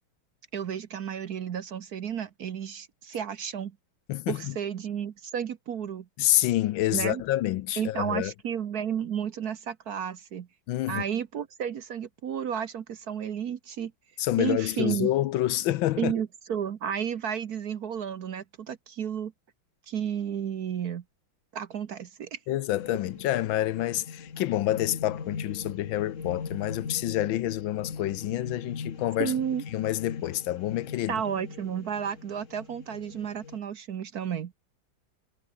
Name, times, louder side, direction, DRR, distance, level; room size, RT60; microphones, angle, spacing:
voice 1, 0.5-3.8 4.3-6.1 6.9-7.2 7.8-10.5 10.9-13.9 14.4-15.1 16.0-19.3 19.9-21.0 21.5-22.4 29.2-29.6 31.1-34.5, right 8 dB, 55° right, 1.3 m, -32 dB
voice 2, 6.2-8.3 10.7-11.0 14.2-16.1 22.5-29.3 29.7-31.2, left 14 dB, 75° left, 1.4 m, -28 dB
sound 1, 22.8-33.6, left 5 dB, 40° left, 2.0 m, -41 dB
omnidirectional pair, 2.3 m